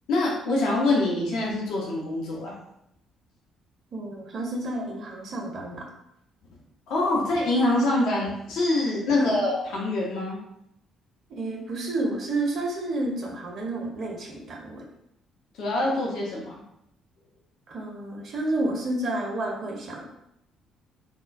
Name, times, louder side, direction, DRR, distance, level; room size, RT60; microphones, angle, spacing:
voice 1, 0.1-2.5 6.9-10.4 15.5-16.6, left 2 dB, 60° left, -3 dB, 0.5 m, -25 dB
voice 2, 3.9-5.9 9.1-9.5 11.3-14.8 17.7-20.0, right 2 dB, 45° right, -1 dB, 0.6 m, -30 dB
3.6 x 2.1 x 2.4 m, 0.79 s
figure-of-eight pair, 45°, 0 cm